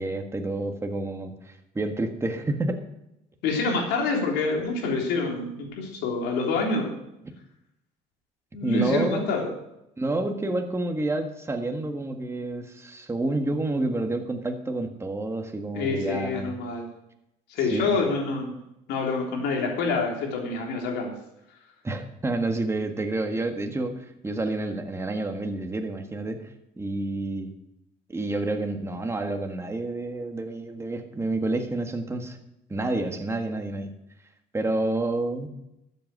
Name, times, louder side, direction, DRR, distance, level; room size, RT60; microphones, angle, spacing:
voice 1, 0.0-2.8 8.6-9.3 10.0-16.5 17.7-18.0 21.8-26.5 26.8-27.5 28.1-32.4 32.7-33.9 34.5-35.5, right 2 dB, 15° right, 4 dB, 1.7 m, -29 dB
voice 2, 3.4-6.9 8.5-9.5 15.7-16.9 17.5-18.5 18.9-21.1, left 3 dB, 85° left, 1 dB, 3.5 m, -27 dB
13.0 x 8.2 x 6.6 m, 0.85 s
cardioid pair, 110°, 17 cm